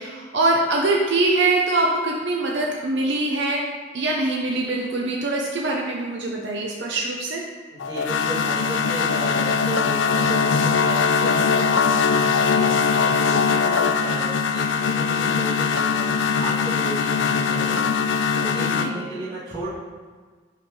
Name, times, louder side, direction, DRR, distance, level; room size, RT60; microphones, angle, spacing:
voice 1, 0.0-3.6 3.9-7.4 18.8-19.0, right 2 dB, 65° right, -1 dB, 0.8 m, -23 dB
voice 2, 7.7-16.1 16.4-17.8 18.3-19.7, right 2 dB, 30° right, -14 dB, 1.9 m, -33 dB
sound 1, 7.8-18.9, left 5 dB, 70° left, 0.4 m, -21 dB
5.8 x 4.9 x 5.4 m, 1.5 s
head